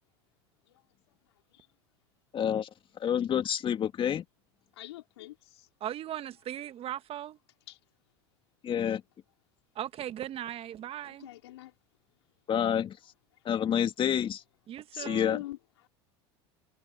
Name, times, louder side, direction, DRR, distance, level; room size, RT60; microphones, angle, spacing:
voice 1, 2.3-2.7 3.0-4.2 8.6-9.0 12.5-13.0 13.4-14.4 14.9-15.4, left 9 dB, 40° left, 2.3 m, -28 dB
voice 2, 4.7-5.7 7.7-7.8 11.0-11.7 14.9-15.9, left 16 dB, 80° left, 4.2 m, -45 dB
voice 3, 5.8-7.4 9.7-11.3 14.7-15.4, right 11 dB, 45° right, 1.5 m, -38 dB
hypercardioid pair, 85°, 14 cm